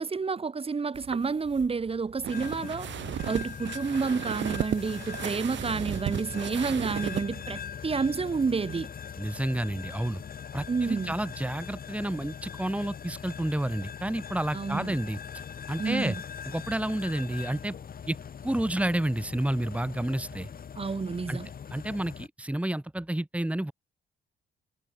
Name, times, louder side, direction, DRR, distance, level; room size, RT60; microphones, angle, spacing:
voice 1, 0.0-2.9 3.2-8.9 10.7-11.1 14.5-15.0 15.8-16.2 20.7-21.5, right 4 dB, 30° right, 1.5 m, -29 dB
sound 1, 0.9-7.3, right 10 dB, 70° right, 3.4 m, -35 dB
sound 2, 2.3-22.3, left 7 dB, 45° left, 2.3 m, -41 dB
voice 2, 9.2-10.2 10.5-15.2 15.7-16.2 16.5-17.7 18.1-18.2 18.4-20.5 21.3-21.4 21.7-23.7, right 1 dB, 5° right, 2.5 m, -30 dB
cardioid pair, 90°, 20 cm